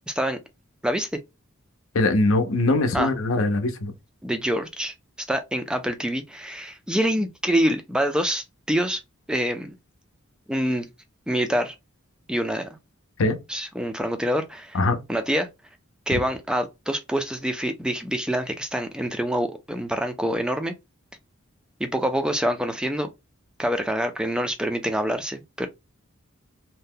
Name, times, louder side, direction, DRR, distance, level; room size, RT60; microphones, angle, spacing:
voice 1, 0.1-0.4 0.8-1.2 2.9-3.1 4.2-4.9 5.3-9.0 9.3-9.8 10.5-10.9 11.3-11.7 12.3-12.7 13.5-14.8 15.1-15.5 16.1-20.7 21.8-23.1 23.6-25.7, equal, 5° right, 0.3 m, -26 dB
voice 2, 1.9-3.9 13.2-13.4 14.7-15.0, left 2 dB, 70° left, 0.6 m, -21 dB
2.7 x 2.1 x 3.6 m
head